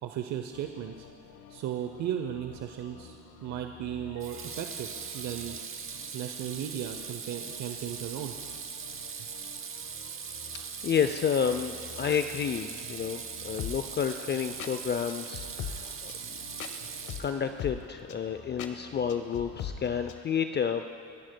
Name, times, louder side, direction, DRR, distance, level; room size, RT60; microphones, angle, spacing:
voice 1, 0.0-1.1 1.5-4.9 5.1-5.6 6.1-8.3, right 10 dB, 65° right, 5 dB, 0.7 m, -36 dB
sound 1, 0.5-20.2, left 7 dB, 80° left, 1.0 m, -46 dB
Water tap faucet / Sink (filling or washing), 2.5-2.9 4.2-17.6, right 6 dB, 45° right, 0.9 m, -40 dB
voice 2, 10.5-16.4 17.2-20.8, left 7 dB, 35° left, 8 dB, 0.5 m, -30 dB
29.0 x 11.0 x 2.2 m, 2.7 s
cardioid pair, 90°, 30 cm